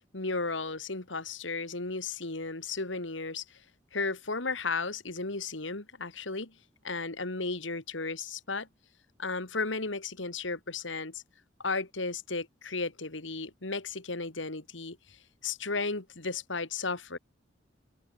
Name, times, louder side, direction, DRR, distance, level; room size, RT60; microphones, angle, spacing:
voice 1, 0.1-3.4 3.9-6.5 6.8-8.7 9.2-11.2 11.6-15.0 15.4-17.2, left 3 dB, 90° left, 2.8 m, -34 dB
head